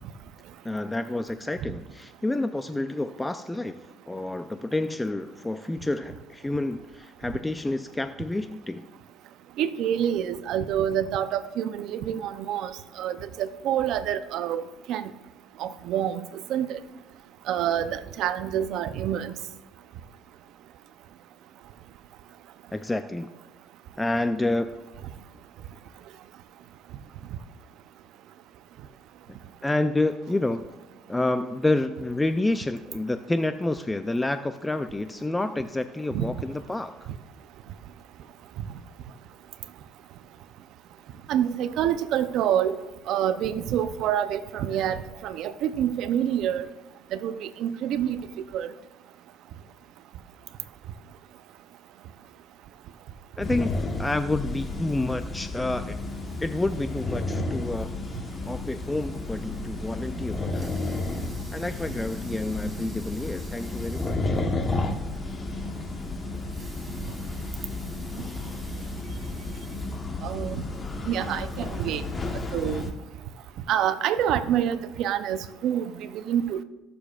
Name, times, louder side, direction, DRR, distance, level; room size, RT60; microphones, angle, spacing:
voice 1, 0.6-3.8 4.1-8.9 22.7-23.3 24.0-24.8 29.6-30.6 31.1-37.1 53.4-53.7 54.0-56.0 56.4-57.9 58.5-60.7 61.5-64.4, left 2 dB, 15° left, 10 dB, 0.5 m, -29 dB
voice 2, 9.6-12.7 13.0-14.6 14.9-15.1 15.6-16.8 17.5-19.3 36.1-36.3 41.3-42.8 43.1-46.7 47.1-48.3 48.5-48.7 70.2-70.6 71.1-72.0 72.5-72.8 73.7-76.6, right 10 dB, 70° right, 12 dB, 0.6 m, -27 dB
sound 1, 53.4-72.9, left 2 dB, 30° left, 1.2 m, -32 dB
Water tap faucet / Sink (filling or washing) / Liquid, 60.5-64.3 64.7-64.8 65.2-65.3 66.3-70.5 71.1-71.2, right 2 dB, 20° right, 2.8 m, -50 dB
18.5 x 6.9 x 2.4 m, 1.1 s
supercardioid pair, 85°, 0 cm